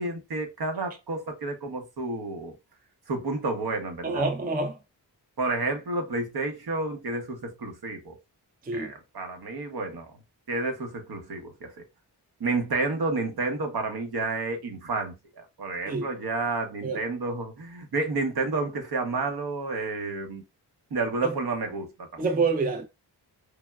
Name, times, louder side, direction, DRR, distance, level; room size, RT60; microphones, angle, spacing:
voice 1, 0.0-2.5 3.1-4.2 5.4-8.1 8.7-10.1 10.5-11.7 12.4-20.4 20.9-22.2, right 3 dB, 60° right, 1.0 m, -30 dB
voice 2, 4.0-4.8 8.6-8.9 15.9-16.1 16.8-17.0 21.2-21.4 22.2-22.8, right 3 dB, 20° right, 0.4 m, -27 dB
3.3 x 2.2 x 2.3 m
cardioid pair, 75°, 42 cm